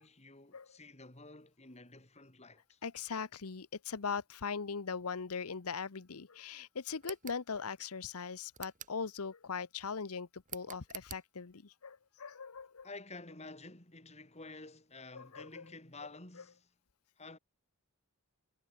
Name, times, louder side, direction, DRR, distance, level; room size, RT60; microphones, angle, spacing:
voice 1, 0.0-2.8 12.8-16.7 17.2-17.4, left 3 dB, 30° left, 3.7 m, -51 dB
voice 2, 2.8-12.9 15.1-15.6, left 5 dB, 85° left, 0.9 m, -40 dB
sound 1, 7.0-7.4 8.5-9.0 10.5-11.2, right 11 dB, 35° right, 5.7 m, -47 dB
head